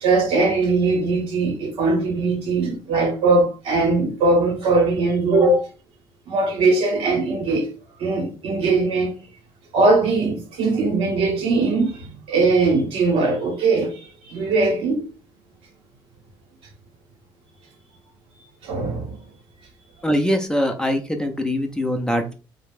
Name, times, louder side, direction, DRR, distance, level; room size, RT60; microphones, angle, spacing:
voice 1, 0.0-5.7 6.3-7.7 8.0-9.2 9.7-15.1 18.6-19.2, right 3 dB, 70° right, 0.9 m, -20 dB
voice 2, 20.0-22.3, equal, 5° left, 0.5 m, -22 dB
2.4 x 2.1 x 3.3 m
supercardioid pair, 70°, 10 cm